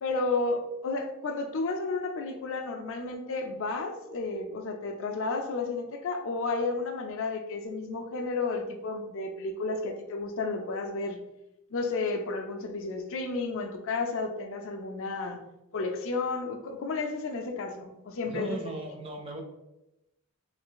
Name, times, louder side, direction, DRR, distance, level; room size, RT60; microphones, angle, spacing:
voice 1, 0.0-11.2 11.7-15.4 15.7-18.6, left 3 dB, 60° left, 4 dB, 0.4 m, -32 dB
voice 2, 18.3-19.4, right 2 dB, 25° right, 3 dB, 0.5 m, -37 dB
3.2 x 2.4 x 3.7 m, 0.91 s
head